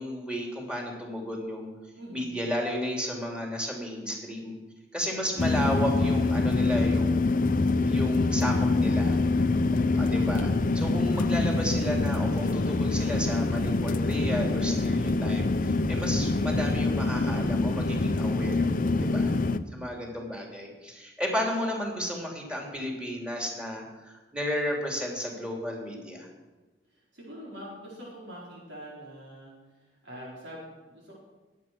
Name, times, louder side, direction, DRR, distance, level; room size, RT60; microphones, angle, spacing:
voice 1, 0.0-1.7 2.1-4.6 4.9-7.3 7.9-9.2 9.9-18.7 19.0-19.3 19.7-26.3, equal, 5° right, 0 dB, 2.9 m, -33 dB
voice 2, 1.9-2.5 5.0-5.5 9.1-9.6 18.7-19.4 26.9-31.1, equal, 80° right, -5 dB, 4.5 m, -45 dB
sound 1, 5.4-19.6, left 3 dB, 50° left, 0.7 m, -25 dB
21.0 x 8.4 x 6.0 m, 1.2 s
head